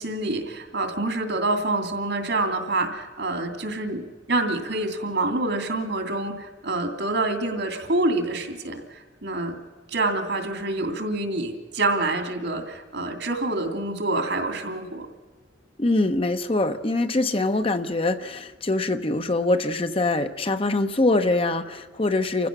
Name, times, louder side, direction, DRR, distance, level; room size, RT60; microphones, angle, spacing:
voice 1, 0.0-9.6 9.9-15.1, right 2 dB, 70° right, 6 dB, 2.6 m, -27 dB
voice 2, 15.8-22.5, left 2 dB, 30° left, 8 dB, 0.8 m, -23 dB
29.5 x 15.5 x 6.1 m, 1.4 s
head